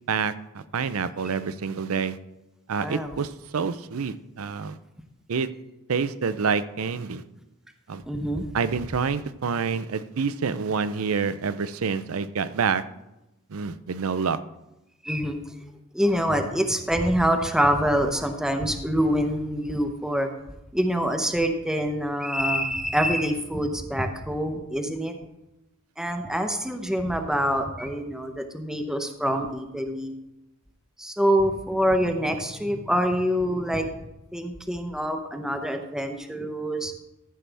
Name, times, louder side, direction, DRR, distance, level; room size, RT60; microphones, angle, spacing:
voice 1, 0.1-2.2 2.7-4.8 5.3-5.5 5.9-7.2 7.9-8.0 8.5-12.8 13.5-14.4, right 5 dB, 70° right, 14 dB, 0.5 m, -27 dB
voice 2, 2.8-3.1 8.1-8.5 15.0-15.4 15.9-20.3 20.7-25.1 26.0-30.1 31.0-33.9 34.3-36.9, equal, 5° right, 5 dB, 0.8 m, -25 dB
14.0 x 7.6 x 3.4 m, 0.93 s
head